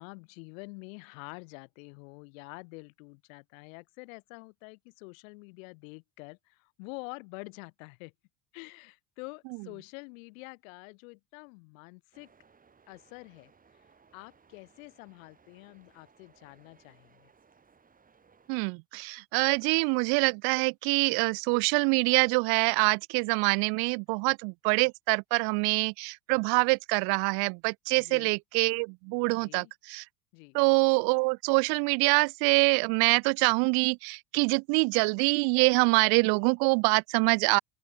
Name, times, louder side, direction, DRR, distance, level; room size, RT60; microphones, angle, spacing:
voice 1, 0.0-8.1 8.5-12.3 12.9-13.5 14.1-17.3 28.0-28.3 29.3-29.7 30.3-30.6, left 29 dB, 80° left, 3.6 m, -47 dB
sound 1, 12.1-18.5, right 5 dB, 20° right, 3.9 m, -63 dB
voice 2, 18.5-30.0 30.5-37.6, right 34 dB, 65° right, 0.6 m, -25 dB
open air
supercardioid pair, 120°, 40 cm